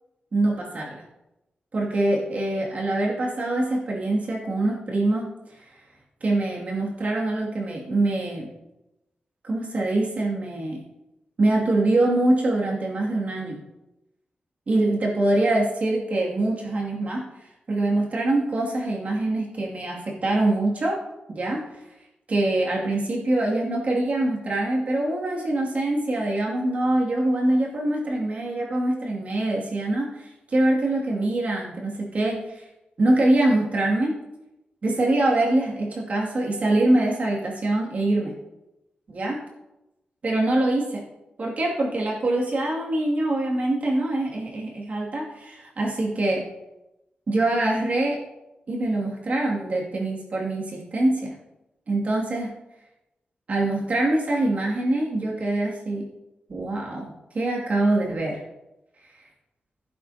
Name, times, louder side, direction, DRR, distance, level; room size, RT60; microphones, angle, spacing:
voice 1, 0.3-1.0 1.7-5.3 6.2-8.5 9.4-10.8 11.4-13.6 14.7-17.2 17.7-21.0 21.3-21.6 22.3-32.7 33.0-34.1 34.8-38.3 39.1-39.4 40.2-41.0 41.4-46.4 47.3-48.2 48.7-51.3 51.9-52.5 53.5-56.0 56.5-58.4, right 2 dB, 45° right, -3 dB, 2.4 m, -24 dB
16.0 x 8.4 x 2.8 m, 0.95 s
wide cardioid pair, 175°, 3 cm